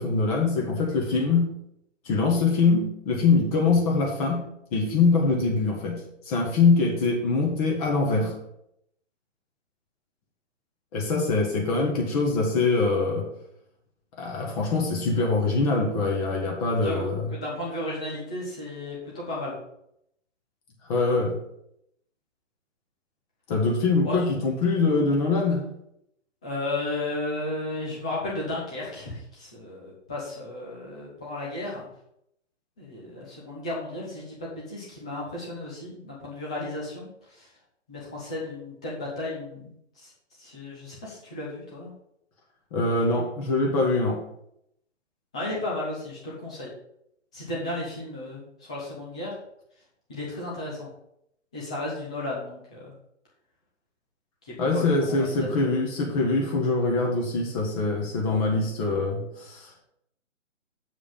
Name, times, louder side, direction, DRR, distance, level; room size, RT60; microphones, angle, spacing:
voice 1, 0.0-1.5 2.0-4.4 4.7-8.3 10.9-13.3 14.2-17.3 20.8-21.4 23.5-25.6 42.7-44.2 54.6-59.8, left 3 dB, 30° left, 0 dB, 1.6 m, -23 dB
voice 2, 16.8-19.6 24.0-24.3 26.4-31.9 32.8-37.5 37.9-40.1 40.4-41.9 45.3-46.7 47.3-49.3 50.1-50.9 51.5-52.9 54.4-55.5, left 2 dB, 5° left, -5 dB, 0.4 m, -34 dB
7.4 x 4.8 x 5.3 m, 0.76 s
hypercardioid pair, 140°, 38 cm